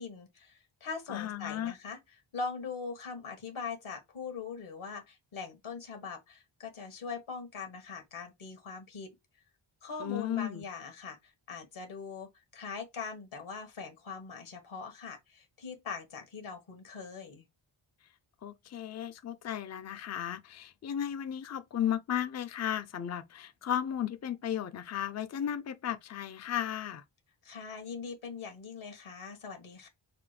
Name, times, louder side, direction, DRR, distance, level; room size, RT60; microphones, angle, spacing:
voice 1, 0.0-2.0 2.3-9.1 9.8-17.4 27.4-29.9, left 5 dB, 75° left, 1.3 m, -41 dB
voice 2, 1.1-1.7 10.0-10.6 18.4-27.0, left 10 dB, 35° left, 0.4 m, -35 dB
5.7 x 2.1 x 3.2 m
wide cardioid pair, 135°, 49 cm